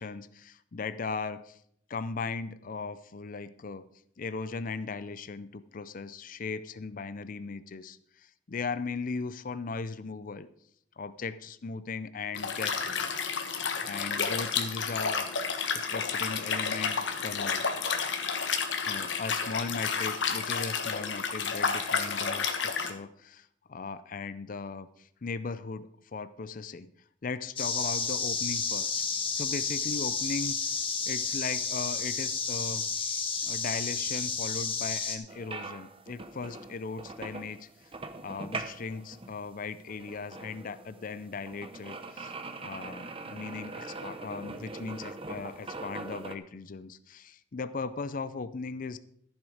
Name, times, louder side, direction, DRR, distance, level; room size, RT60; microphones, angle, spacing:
voice 1, 0.0-1.6 1.9-3.8 4.2-10.5 11.0-13.1 13.8-15.3 15.7-17.7 18.9-26.9 27.2-28.9 29.4-30.6 31.1-37.7 38.2-42.3 42.6-49.0, left 4 dB, 50° left, 14 dB, 0.5 m, -38 dB
Liquid, 12.3-22.9, left 5 dB, 80° left, 1.4 m, -31 dB
sound 1, 27.6-35.2, left 5 dB, 30° left, 1.6 m, -31 dB
sound 2, 35.3-46.3, right 3 dB, 30° right, 0.9 m, -42 dB
14.0 x 7.4 x 4.9 m, 0.68 s
head